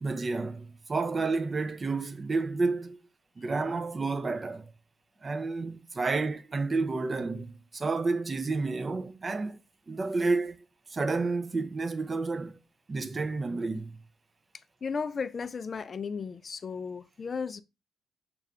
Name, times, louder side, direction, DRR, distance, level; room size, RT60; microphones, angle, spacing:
voice 1, 0.0-3.0 3.4-4.7 5.2-9.6 9.9-10.6 10.9-12.6 12.9-14.0, right 3 dB, 30° right, 0.4 m, -30 dB
voice 2, 14.8-17.6, left 5 dB, 40° left, 0.3 m, -35 dB
4.2 x 2.3 x 3.6 m
cardioid pair, 90°, 0 cm